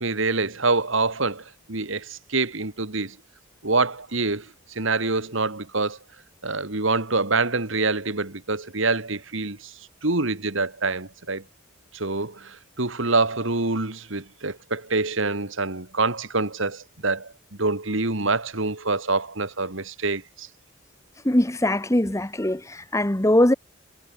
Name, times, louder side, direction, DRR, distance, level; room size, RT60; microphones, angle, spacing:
voice 1, 0.0-3.2 3.6-6.0 6.4-9.7 10.0-11.4 11.9-17.3 17.6-20.5, right 3 dB, 60° right, 2.1 m, -26 dB
voice 2, 21.2-23.5, left 1 dB, 15° left, 1.1 m, -21 dB
head